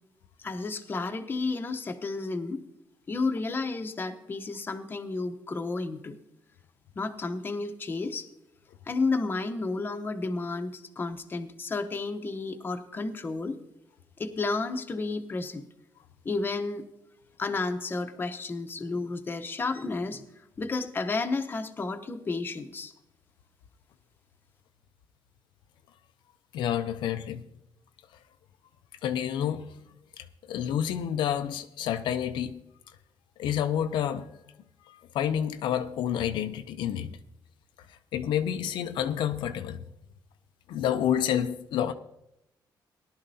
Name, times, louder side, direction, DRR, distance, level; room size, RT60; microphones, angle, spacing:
voice 1, 0.4-2.6 3.1-6.2 7.0-8.3 8.9-13.6 14.2-15.6 16.2-16.8 17.4-20.2 20.6-22.9, left 3 dB, 25° left, 0.9 m, -32 dB
voice 2, 26.5-27.4 29.0-29.7 30.2-32.5 33.4-34.3 34.9-37.2 37.9-39.8 40.7-41.9, left 9 dB, 85° left, 0.5 m, -29 dB
18.0 x 11.5 x 2.7 m
cardioid pair, 120°, 8 cm